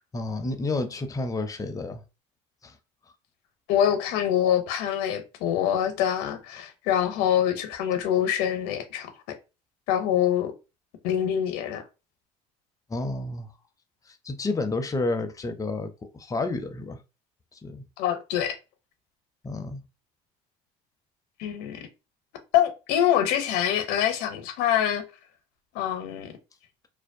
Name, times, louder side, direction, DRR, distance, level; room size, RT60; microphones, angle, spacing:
voice 1, 0.1-2.0 2.6-2.8 12.9-13.5 14.1-17.0 17.5-17.9 19.4-19.8, left 2 dB, 20° left, 0.5 m, -30 dB
voice 2, 3.7-9.4 9.9-10.5 11.0-11.8 18.0-18.6 21.4-21.9 22.5-25.0 25.7-26.3, left 10 dB, 75° left, 0.6 m, -25 dB
2.6 x 2.1 x 2.5 m
supercardioid pair, 85°, 17 cm